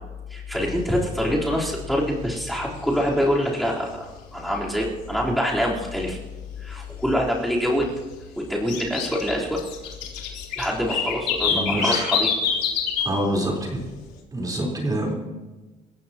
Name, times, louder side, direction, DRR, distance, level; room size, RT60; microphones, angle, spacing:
voice 1, 0.3-6.2 6.6-7.9 8.4-9.6 10.5-12.3, equal, ahead, -6 dB, 4.0 m, -25 dB
sound 1, 0.7-0.8 1.2-1.4 1.7-2.2 2.6-3.8 4.2-4.3 4.8-4.9 5.4-5.5 5.9-6.0 6.4-7.2 7.4-13.1 13.4-13.8, left 7 dB, 80° left, 3.7 m, -27 dB
voice 2, 11.5-12.1 13.0-13.7 14.3-15.1, right 1 dB, 20° right, -1 dB, 4.2 m, -25 dB
27.5 x 15.5 x 3.0 m, 1.2 s
cardioid pair, 110°, 17 cm